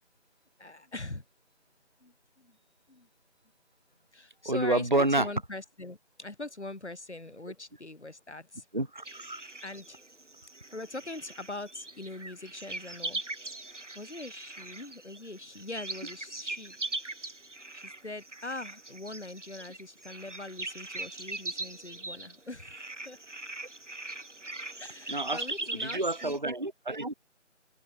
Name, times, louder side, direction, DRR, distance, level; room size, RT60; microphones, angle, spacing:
voice 1, 0.6-1.2 2.0-2.6 2.9-3.1 4.1-8.6 9.0-9.2 9.6-10.0 10.7-13.3 13.7-16.8 17.2-17.4 17.7-23.2 24.8-26.4, left 2 dB, 65° left, 7.2 m, -42 dB
voice 2, 4.5-5.3 8.7-9.4 25.1-25.4 25.8-27.1, right 2 dB, 40° right, 0.6 m, -28 dB
sound 1, 9.0-26.4, right 2 dB, 75° right, 4.9 m, -41 dB
figure-of-eight pair, 175°, 37 cm